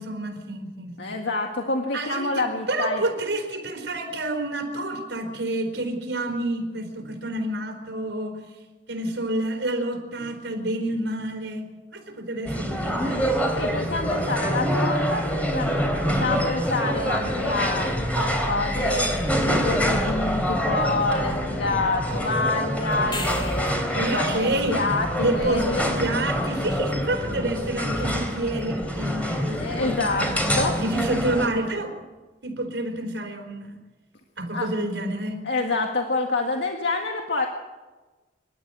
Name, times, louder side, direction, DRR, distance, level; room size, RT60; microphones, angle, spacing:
voice 1, 0.0-1.1 1.9-8.4 8.9-13.2 24.0-24.8 25.2-30.4 30.8-31.9 32.4-33.8 34.4-35.4, right 1 dB, 85° right, 4 dB, 4.5 m, -28 dB
voice 2, 1.0-3.0 13.6-19.1 19.5-25.1 25.3-25.8 29.5-30.3 30.5-30.7 34.5-34.7 35.4-37.5, left 3 dB, 75° left, 2 dB, 1.8 m, -27 dB
sound 1, 12.4-31.5, equal, 10° left, 3.4 m, -26 dB
sound 2, 22.9-23.9 28.6-28.7, left 3 dB, 25° left, 3.3 m, -34 dB
26.0 x 13.0 x 8.6 m, 1.2 s
head